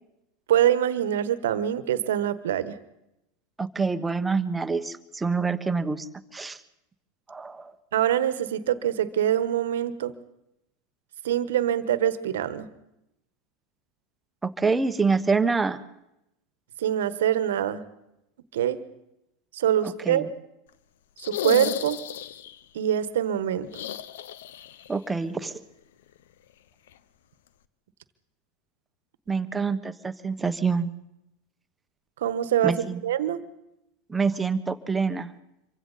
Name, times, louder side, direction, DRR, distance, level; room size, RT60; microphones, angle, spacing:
voice 1, 0.5-2.8 7.9-10.1 11.2-12.7 16.8-17.8 18.5-18.8 19.5-20.3 21.2-22.0 22.7-23.7 32.2-33.4, right 10 dB, 75° right, 14 dB, 1.3 m, -24 dB
voice 2, 3.6-6.1 6.3-6.6 7.3-7.6 14.4-15.8 19.8-20.3 24.9-25.5 29.3-30.9 32.6-33.0 34.1-35.3, right 4 dB, 15° right, 10 dB, 1.3 m, -26 dB
sound 1, 21.2-22.6 23.7-24.9 25.1-25.2 26.9-27.0, left 11 dB, 75° left, 0.9 m, -33 dB
26.5 x 24.0 x 4.2 m, 0.86 s
hypercardioid pair, 90°, 0 cm